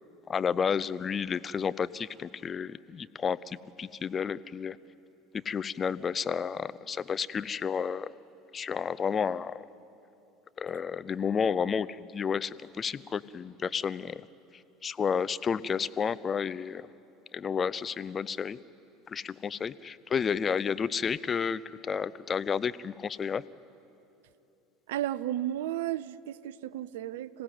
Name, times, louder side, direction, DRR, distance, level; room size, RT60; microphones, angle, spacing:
voice 1, 0.3-4.8 5.3-8.1 8.5-9.6 10.6-14.3 14.8-16.9 17.3-18.6 19.1-23.4, left 6 dB, 30° left, 16 dB, 0.6 m, -31 dB
voice 2, 24.9-27.4, right 12 dB, 65° right, 18 dB, 0.6 m, -33 dB
26.0 x 16.0 x 9.3 m, 2.9 s
figure-of-eight pair, 70°, 0 cm